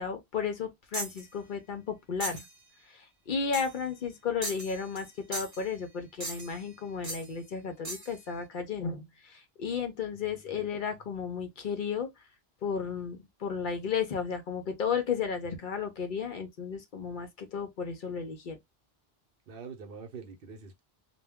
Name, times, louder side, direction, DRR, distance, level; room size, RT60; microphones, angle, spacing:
voice 1, 0.0-2.5 2.9-12.1 12.6-18.6, left 6 dB, 60° left, 0.7 m, -34 dB
sound 1, 0.9-1.2 2.2-2.5 3.5-3.8 4.4-5.1 5.3-5.6 6.2-6.6 7.0-7.3 7.8-8.1, right 1 dB, 20° right, 0.7 m, -38 dB
voice 2, 10.2-10.7 19.5-20.8, right 5 dB, 65° right, 0.8 m, -45 dB
2.2 x 2.1 x 3.4 m
omnidirectional pair, 1.0 m